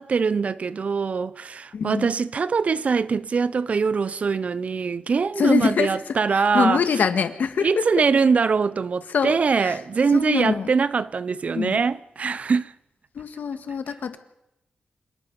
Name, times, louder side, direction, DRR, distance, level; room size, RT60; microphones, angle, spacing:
voice 1, 0.0-6.8 7.6-12.7, right 5 dB, 50° right, 0.6 m, -23 dB
voice 2, 1.7-2.1 5.4-5.9 6.3-7.9 9.1-9.8 10.1-10.7 11.5-11.8 13.1-14.2, left 6 dB, 75° left, 1.7 m, -24 dB
27.0 x 18.5 x 5.4 m
wide cardioid pair, 125°, 3 cm